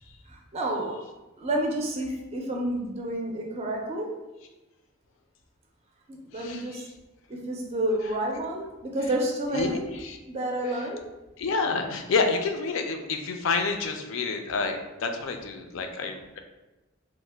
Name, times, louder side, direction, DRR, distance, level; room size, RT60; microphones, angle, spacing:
voice 1, 0.3-1.0 1.4-4.1 6.1-6.8 7.3-9.8 10.3-11.0, right 1 dB, 30° right, 0 dB, 0.4 m, -30 dB
voice 2, 6.3-6.9 9.5-10.2 10.7-10.9 11.4-16.4, left 4 dB, 70° left, 5 dB, 0.4 m, -29 dB
2.9 x 2.1 x 3.3 m, 1.1 s
head